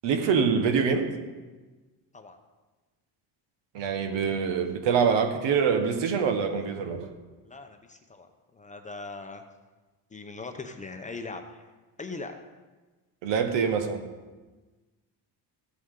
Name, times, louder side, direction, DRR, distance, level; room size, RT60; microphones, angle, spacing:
voice 1, 0.0-1.1 3.7-7.1 13.2-14.0, right 6 dB, 75° right, 6 dB, 1.4 m, -25 dB
voice 2, 6.5-6.8 7.5-9.4 10.1-11.6 12.0-12.4, left 3 dB, 15° left, 6 dB, 0.7 m, -40 dB
14.5 x 8.5 x 3.8 m, 1.3 s
cardioid pair, 140°, 43 cm